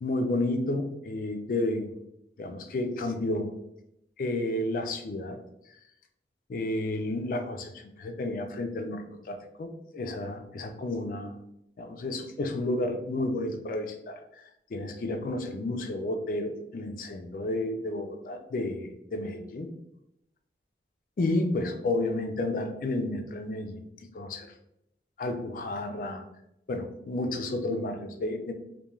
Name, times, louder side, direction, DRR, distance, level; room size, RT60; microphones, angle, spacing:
voice 1, 0.0-1.9 2.4-3.5 4.2-5.4 5.7-5.8 6.5-11.4 11.8-19.7 21.2-23.8 24.1-24.5 25.2-26.2 26.7-28.5, left 2 dB, 50° left, 5 dB, 0.3 m, -31 dB
3.0 x 2.2 x 2.3 m, 0.82 s
head